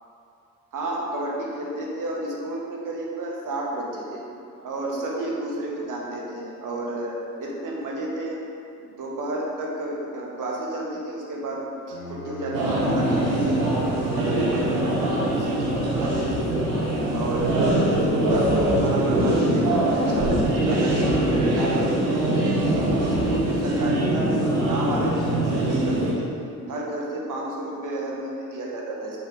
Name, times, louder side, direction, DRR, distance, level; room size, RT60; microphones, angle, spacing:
voice 1, 0.7-4.2 4.6-8.4 8.8-16.4 17.1-17.5 17.8-22.1 22.5-26.3 26.7-29.3, right 1 dB, 40° right, -3 dB, 1.5 m, -31 dB
Bowed string instrument, 11.9-15.9, left 1 dB, 85° left, 1.0 m, -39 dB
sound 1, 12.5-26.1, right 1 dB, 80° right, 1.2 m, -23 dB
6.7 x 5.5 x 3.6 m, 2.6 s
figure-of-eight pair, 45°, 48 cm